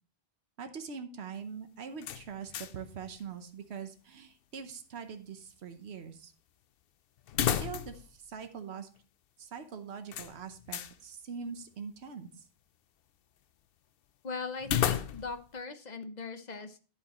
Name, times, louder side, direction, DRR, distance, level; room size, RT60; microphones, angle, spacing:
voice 1, 0.6-6.3 7.4-8.9 9.4-12.5, right 6 dB, 85° right, 7 dB, 1.2 m, -43 dB
sound 1, 2.0-2.9 3.2-3.3 7.3-8.1 8.4-8.5 10.1-11.0 14.6-15.5, left 9 dB, 65° left, 0.8 m, -32 dB
voice 2, 14.2-16.8, left 4 dB, 45° left, 8 dB, 1.0 m, -40 dB
10.5 x 8.2 x 3.0 m, 0.36 s
omnidirectional pair, 1.1 m